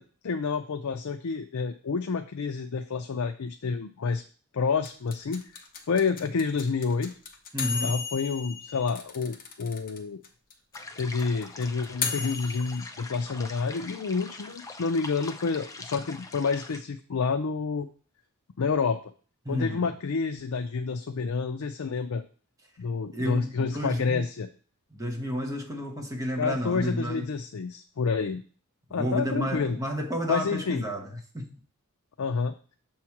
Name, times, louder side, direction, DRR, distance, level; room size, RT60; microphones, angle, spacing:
voice 1, 0.0-4.2 4.5-7.2 7.8-10.2 11.0-17.9 18.6-19.0 19.5-22.2 22.8-24.5 26.4-28.4 28.9-29.8 30.3-30.8 32.2-32.5, left 5 dB, 70° left, 0.5 m, -29 dB
sound 1, 4.8-10.0 10.2-10.3 10.5-12.8, left 5 dB, 40° left, 0.9 m, -34 dB
voice 2, 7.5-8.0 19.4-19.8 23.1-24.2 24.9-27.3 28.9-31.1 31.3-31.6, equal, 15° right, 1.0 m, -31 dB
sound 2, 10.7-16.8, left 3 dB, 15° left, 0.5 m, -43 dB
7.0 x 3.1 x 5.8 m
head